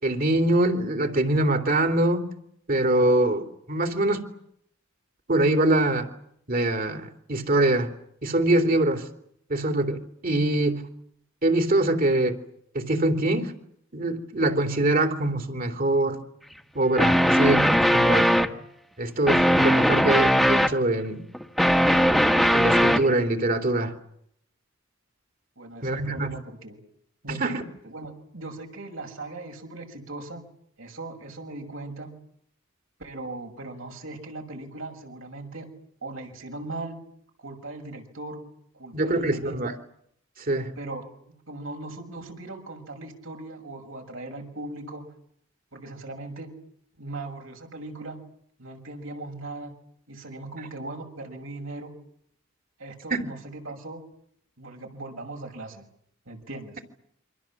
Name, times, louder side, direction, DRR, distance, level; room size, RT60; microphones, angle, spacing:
voice 1, 0.0-2.3 2.7-4.2 5.3-6.1 6.5-7.9 8.2-9.0 9.5-10.8 11.4-12.4 12.7-13.5 13.9-16.2 16.7-17.6 17.9-18.3 19.0-21.2 22.5-23.9 25.8-26.3 27.3-27.6 38.9-39.7 40.5-40.7 53.1-53.2, right 1 dB, 45° right, 6 dB, 3.3 m, -23 dB
sound 1, 17.0-18.6 19.3-20.8 21.3-23.1, equal, ahead, 1.7 m, -19 dB
voice 2, 25.6-26.8 27.2-30.4 30.8-32.2 33.0-35.7 36.0-37.0 37.4-38.4 38.7-39.6 40.8-45.1 45.7-46.6 47.0-48.2 48.6-49.7 50.1-51.9 52.8-54.0 54.6-55.9 56.3-56.8, right 2 dB, 75° right, 3 dB, 6.4 m, -39 dB
28.0 x 25.0 x 7.5 m, 0.69 s
head